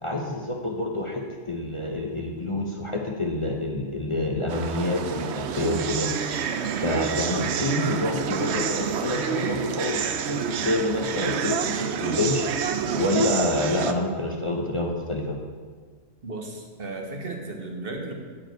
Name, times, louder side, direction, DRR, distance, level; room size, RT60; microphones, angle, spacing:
voice 1, 0.0-6.4 6.8-12.5 13.0-15.4, left 2 dB, 30° left, 0 dB, 0.9 m, -27 dB
sound 1, 4.5-13.9, right 7 dB, 70° right, 0.9 m, -28 dB
voice 2, 16.2-18.1, right 2 dB, 50° right, 2 dB, 1.4 m, -35 dB
9.9 x 4.9 x 7.8 m, 1.5 s
omnidirectional pair, 1.3 m